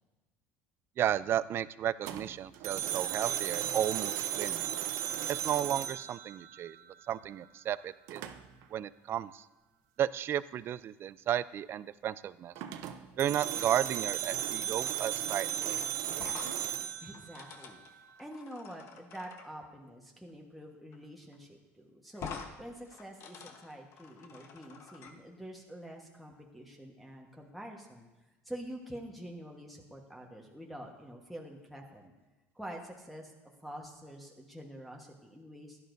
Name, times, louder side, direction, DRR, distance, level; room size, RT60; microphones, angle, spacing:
voice 1, 1.0-4.7 5.3-6.8 7.1-8.2 8.7-9.4 10.0-12.5 13.2-15.7, right 10 dB, 40° right, 17 dB, 0.3 m, -33 dB
sound 1, 2.0-7.0 8.1-8.6 12.5-18.0, right 10 dB, 70° right, 0.7 m, -36 dB
sound 2, 16.1-19.5 20.9-21.1 21.3-21.4 22.1-22.5 22.8-25.1, left 6 dB, 50° left, 1.1 m, -47 dB
voice 2, 17.0-28.1 28.4-32.1 32.5-35.8, equal, ahead, -1 dB, 1.3 m, -47 dB
16.0 x 11.5 x 2.6 m, 1.1 s
cardioid pair, 125°, 6 cm